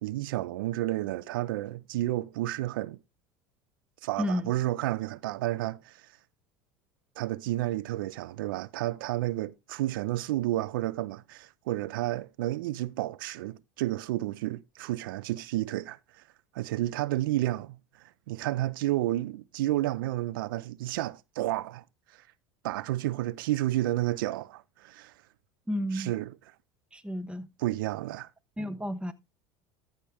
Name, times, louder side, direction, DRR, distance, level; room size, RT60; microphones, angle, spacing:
voice 1, 0.0-3.0 4.0-6.1 7.2-16.2 16.5-22.2 22.6-25.1 25.9-26.5 27.6-28.3, right 15 dB, 85° right, 0.4 m, -31 dB
voice 2, 25.7-26.1 26.9-27.5 28.6-29.1, equal, 10° right, 1.2 m, -31 dB
14.0 x 6.5 x 3.4 m
supercardioid pair, 90°, 11 cm